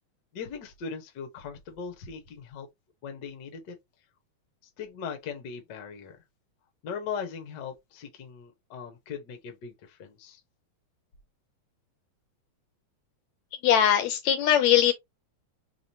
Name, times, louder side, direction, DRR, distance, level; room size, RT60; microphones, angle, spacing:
voice 1, 0.3-2.7 3.0-3.8 4.8-6.2 6.8-10.4, left 6 dB, 65° left, 1.1 m, -39 dB
voice 2, 13.6-14.9, left 10 dB, 80° left, 1.8 m, -21 dB
4.9 x 3.0 x 2.7 m
omnidirectional pair, 3.5 m